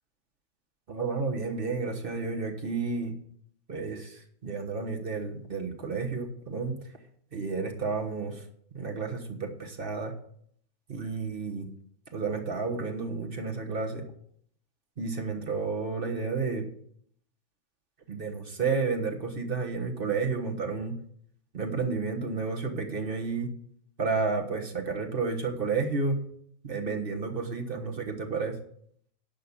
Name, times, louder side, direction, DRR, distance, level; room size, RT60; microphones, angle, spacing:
voice 1, 0.9-3.1 3.7-6.8 7.3-8.4 8.7-10.1 10.9-11.7 12.1-14.0 15.0-16.7 18.1-20.9 21.5-23.5 24.0-26.2 26.6-28.5, right 4 dB, 45° right, 3 dB, 1.4 m, -31 dB
10.5 x 5.7 x 7.1 m, 0.67 s
omnidirectional pair, 1.3 m